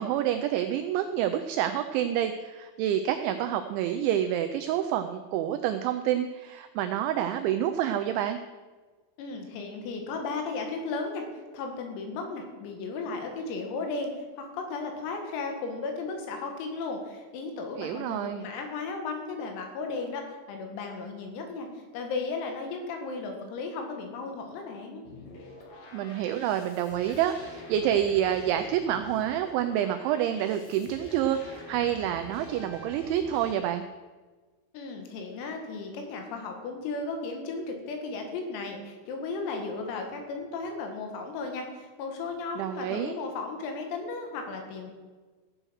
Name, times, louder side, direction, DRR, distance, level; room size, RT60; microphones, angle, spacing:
voice 1, 0.0-8.4 17.8-18.5 25.9-33.8 42.6-43.1, right 10 dB, 85° right, 7 dB, 2.6 m, -28 dB
voice 2, 9.2-11.3 11.5-25.0 34.7-44.9, left 3 dB, 85° left, 3 dB, 4.6 m, -35 dB
sound 1, 25.0-33.5, left 1 dB, 65° left, 1.6 m, -46 dB
15.5 x 7.7 x 6.3 m, 1.4 s
omnidirectional pair, 6.0 m